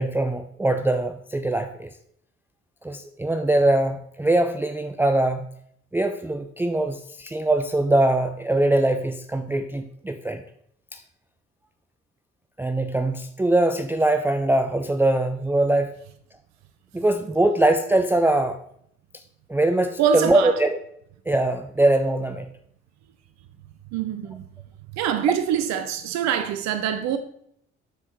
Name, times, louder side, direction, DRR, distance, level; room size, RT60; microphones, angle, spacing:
voice 1, 0.0-1.9 2.8-5.5 5.9-10.4 10.9-11.0 12.6-15.9 16.9-18.6 19.5-20.8 21.3-22.5, right 2 dB, 5° right, 0.4 m, -22 dB
voice 2, 20.0-20.6 23.9-24.5 24.9-27.2, right 8 dB, 55° right, 0.7 m, -24 dB
13.0 x 5.4 x 3.1 m
figure-of-eight pair, 45°, 33 cm